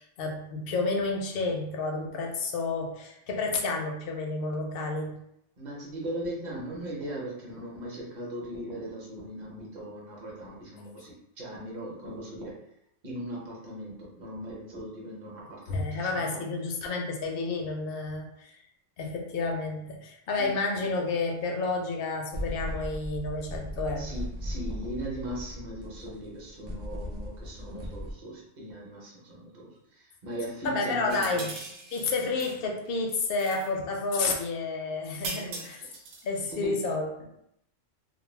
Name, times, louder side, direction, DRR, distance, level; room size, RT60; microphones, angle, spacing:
voice 1, 0.0-5.2 15.7-18.6 19.0-24.1 30.6-31.6 31.9-35.8 36.2-37.3, left 3 dB, 60° left, 1 dB, 0.6 m, -30 dB
voice 2, 5.6-12.6 13.0-16.4 20.4-20.5 24.0-31.5 35.3-35.6 36.5-36.8, right 1 dB, 40° right, -4 dB, 0.8 m, -39 dB
sound 1, 21.0-21.1 22.3-28.1, equal, 60° right, 0.4 m, -37 dB
sound 2, 31.1-32.6 32.8-33.7 35.2-36.4, right 3 dB, 90° right, 1.0 m, -40 dB
2.4 x 2.0 x 3.1 m, 0.77 s
omnidirectional pair, 1.3 m